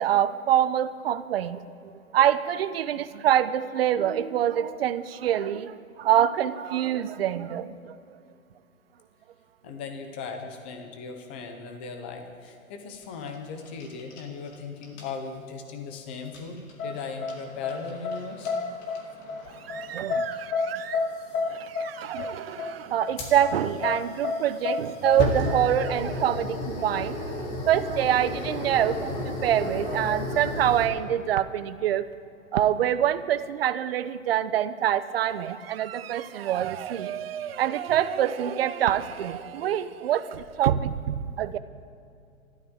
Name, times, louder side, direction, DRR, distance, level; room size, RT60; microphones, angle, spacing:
voice 1, 0.0-8.0 19.7-21.0 21.5-32.0 32.5-41.6, right 10 dB, 45° right, 13 dB, 0.8 m, -26 dB
voice 2, 9.6-18.5 20.1-20.2, left 5 dB, 10° left, 5 dB, 0.4 m, -38 dB
sound 1, 12.9-14.6 14.8-15.1 16.3-16.7 17.3-17.4 17.7-18.2 18.5-18.6 18.8-19.2 20.3-20.4 21.2-21.4 23.2-30.9, left 2 dB, 35° left, 2.5 m, -33 dB
sound 2, 16.8-26.7, left 4 dB, 75° left, 3.5 m, -31 dB
27.5 x 12.5 x 3.6 m, 2.5 s
hypercardioid pair, 145°, 41 cm